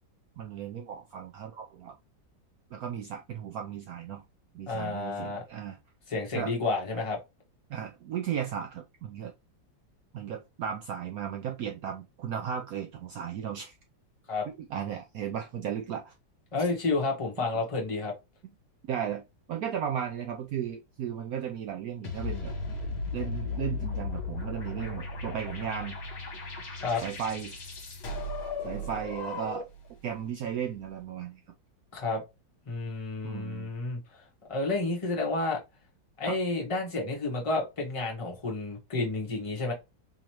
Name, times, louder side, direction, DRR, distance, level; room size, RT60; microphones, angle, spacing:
voice 1, 0.4-2.0 2.7-4.2 4.5-5.8 6.3-6.5 6.9-7.0 7.7-9.3 10.1-13.8 14.5-16.1 17.5-17.6 18.4-18.5 18.9-19.2 19.5-22.5 23.1-26.0 27.0-27.5 28.6-29.7 30.0-31.4 33.2-33.7 36.2-36.4, right 8 dB, 75° right, 0.8 m, -35 dB
voice 2, 4.7-5.4 6.1-7.2 14.3-14.5 16.5-18.1 26.8-27.0 31.9-32.2 32.7-34.0 34.5-35.6 36.2-39.7, left 3 dB, 20° left, 0.9 m, -30 dB
sound 1, 22.0-29.9, left 3 dB, 50° left, 1.5 m, -36 dB
3.8 x 2.9 x 2.9 m
omnidirectional pair, 2.0 m